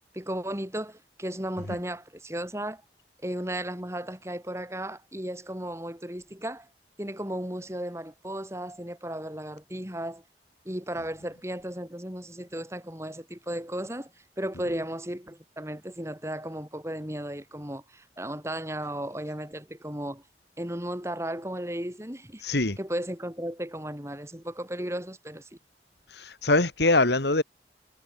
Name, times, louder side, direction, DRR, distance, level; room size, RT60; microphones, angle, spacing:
voice 1, 0.1-2.8 3.2-6.7 7.0-10.2 10.7-14.1 14.4-20.2 20.6-22.4 22.8-25.5, right 1 dB, 15° right, 5.2 m, -35 dB
voice 2, 22.4-22.8 26.2-27.4, left 2 dB, 70° left, 2.3 m, -23 dB
head